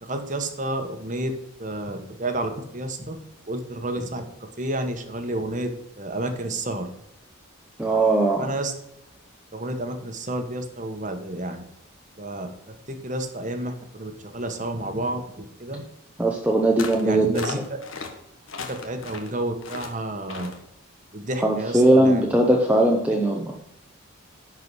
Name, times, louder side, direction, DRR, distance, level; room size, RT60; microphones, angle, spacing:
voice 1, 0.0-1.3 1.6-3.2 3.5-5.7 6.0-6.9 8.4-8.7 9.5-11.6 12.2-15.8 17.0-17.8 18.7-20.5 21.1-22.2, right 1 dB, 35° right, 6 dB, 1.2 m, -30 dB
voice 2, 7.8-8.5 16.2-17.3 21.4-23.5, right 1 dB, 5° right, 0 dB, 0.8 m, -19 dB
sound 1, 16.8-17.1 17.3-18.1 18.5-19.3 19.6-19.9 20.3-20.6, left 4 dB, 70° left, 1.5 m, -35 dB
11.0 x 4.8 x 6.2 m, 0.83 s
head